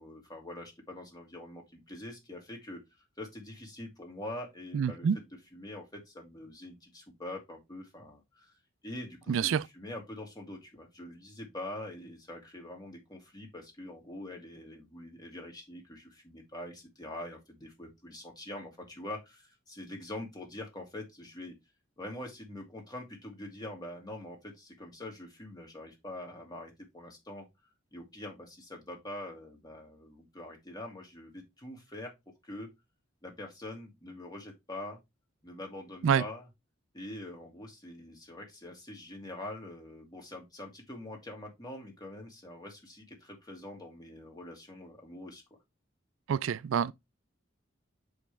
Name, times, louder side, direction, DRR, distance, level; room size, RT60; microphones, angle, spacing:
voice 1, 0.0-2.8 3.2-5.2 5.5-8.5 8.8-21.5 22.0-27.5 27.9-32.1 32.4-32.7 33.2-35.0 35.4-36.4 36.9-45.4, left 1 dB, 20° left, 2.4 m, -44 dB
voice 2, 4.7-5.2 9.3-9.7 36.0-36.2 46.3-46.9, right 7 dB, 80° right, 0.3 m, -27 dB
6.3 x 5.2 x 3.4 m
head